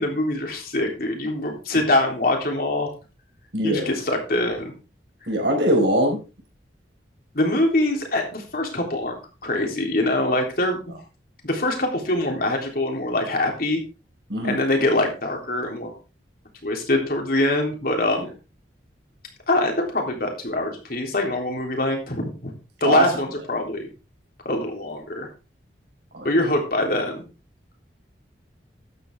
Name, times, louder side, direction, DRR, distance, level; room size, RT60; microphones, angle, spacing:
voice 1, 0.0-2.9 3.6-4.7 7.3-10.9 11.4-13.8 14.4-15.9 16.6-18.3 19.5-22.5 22.8-23.9 24.5-25.3 26.2-27.3, left 1 dB, 55° left, 2 dB, 3.5 m, -24 dB
voice 2, 3.5-3.9 5.3-6.2 14.3-14.6 22.8-23.0 26.1-26.3, equal, 75° right, 2 dB, 5.1 m, -21 dB
13.0 x 9.4 x 3.6 m, 0.31 s
head